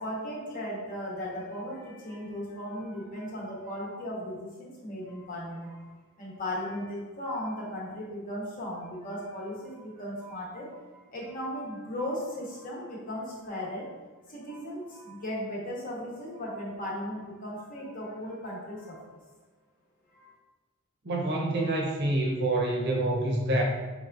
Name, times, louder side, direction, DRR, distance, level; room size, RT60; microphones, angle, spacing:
voice 1, 0.0-5.9 6.2-14.0 14.3-19.2 20.1-20.3, equal, 40° left, -4 dB, 1.0 m, -37 dB
voice 2, 21.0-23.6, right 1 dB, 50° right, 0 dB, 0.7 m, -27 dB
5.0 x 3.4 x 2.5 m, 1.2 s
head